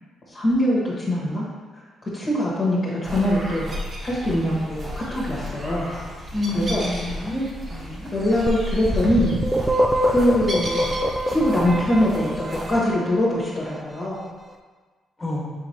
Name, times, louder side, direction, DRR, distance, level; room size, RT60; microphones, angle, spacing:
voice 1, 0.3-1.4 2.1-3.7 4.0-5.9 6.5-6.8 8.1-9.3 10.0-10.8 11.3-14.2, left 1 dB, 40° left, -6 dB, 1.2 m, -22 dB
sound 1, 3.0-12.8, equal, 40° right, 1.1 m, -34 dB
voice 2, 6.3-8.1 15.2-15.5, left 1 dB, 20° left, -5 dB, 1.3 m, -29 dB
sound 2, 8.5-13.3, equal, 15° right, 0.4 m, -24 dB
5.6 x 3.2 x 2.8 m, 1.4 s
cardioid pair, 90°, 0 cm